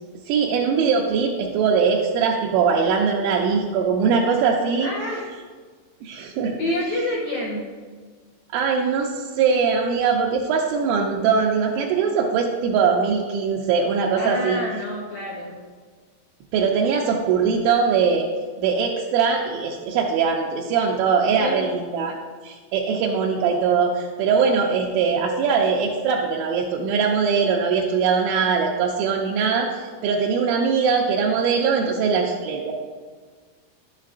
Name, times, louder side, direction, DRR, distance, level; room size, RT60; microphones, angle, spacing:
voice 1, 0.3-4.9 6.0-6.5 8.5-14.6 16.5-18.3 18.6-22.1 22.4-32.7, right 5 dB, 80° right, -2 dB, 2.8 m, -21 dB
voice 2, 4.8-5.3 6.6-7.7 14.1-15.6 21.4-21.6, left 1 dB, 85° left, -4 dB, 2.1 m, -28 dB
11.0 x 7.4 x 2.5 m, 1.5 s
omnidirectional pair, 5.8 m